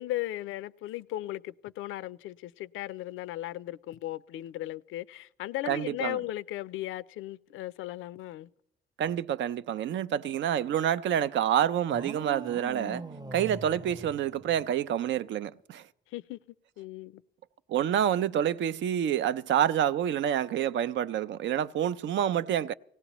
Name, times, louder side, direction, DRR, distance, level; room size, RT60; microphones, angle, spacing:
voice 1, 0.0-8.5 16.1-16.4 16.8-17.2, left 15 dB, 85° left, 0.5 m, -37 dB
voice 2, 5.7-6.2 9.0-13.0 13.3-15.8 17.7-22.7, right 10 dB, 70° right, 0.5 m, -28 dB
sound 1, 11.9-15.0, right 3 dB, 20° right, 0.7 m, -42 dB
18.5 x 17.0 x 3.0 m
cardioid pair, 90°, 20 cm